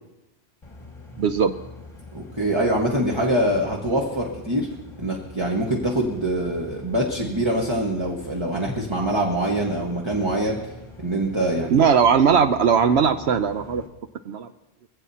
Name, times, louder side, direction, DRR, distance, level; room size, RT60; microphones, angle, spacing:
sound 1, 0.6-13.9, left 2 dB, 25° left, 1.6 m, -43 dB
voice 1, 1.2-1.5 11.7-13.8 14.3-14.5, right 6 dB, 70° right, 9 dB, 0.9 m, -19 dB
voice 2, 2.1-4.7 5.0-10.6 11.0-11.8, right 1 dB, 25° right, -1 dB, 1.4 m, -24 dB
22.0 x 16.5 x 2.8 m, 0.98 s
omnidirectional pair, 1.2 m